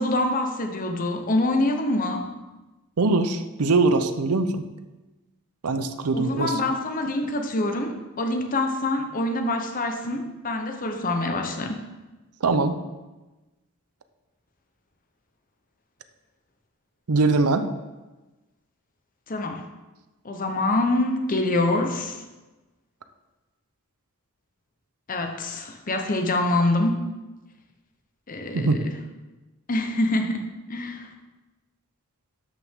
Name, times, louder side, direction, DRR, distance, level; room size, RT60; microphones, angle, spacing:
voice 1, 0.0-2.3 6.1-11.8 19.3-19.6 20.2-22.2 25.1-27.0 28.3-28.9 29.7-31.1, left 2 dB, 40° left, 4 dB, 0.8 m, -25 dB
voice 2, 3.0-4.7 5.6-6.5 12.4-12.7 17.1-17.7 28.5-28.8, right 3 dB, 85° right, 10 dB, 0.7 m, -22 dB
12.5 x 5.8 x 3.6 m, 1.1 s
head